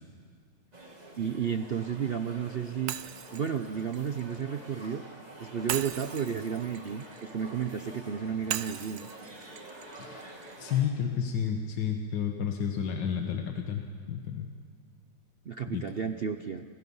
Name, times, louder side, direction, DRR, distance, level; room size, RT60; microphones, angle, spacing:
sound 1, 0.7-10.8, right 1 dB, 20° right, 2.7 m, -48 dB
voice 1, 1.2-2.9 3.3-5.0 5.4-9.1 15.5-16.6, right 7 dB, 60° right, 8 dB, 0.6 m, -32 dB
Shatter, 2.9-4.9 5.7-7.8 8.5-10.6, right 11 dB, 85° right, 1.5 m, -39 dB
voice 2, 10.6-13.8 14.1-14.5 15.7-15.8, left 8 dB, 80° left, 3 dB, 1.9 m, -31 dB
29.5 x 26.5 x 5.5 m, 2.1 s
omnidirectional pair, 1.9 m